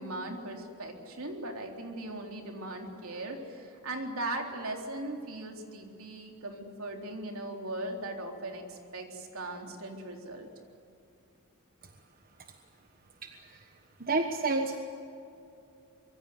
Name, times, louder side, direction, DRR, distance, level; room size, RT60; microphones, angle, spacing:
voice 1, 0.0-10.5, right 2 dB, 70° right, 2 dB, 3.9 m, -39 dB
voice 2, 13.2-13.7 14.0-14.8, right 3 dB, 40° right, 5 dB, 1.3 m, -30 dB
25.0 x 23.0 x 7.9 m, 2.8 s
head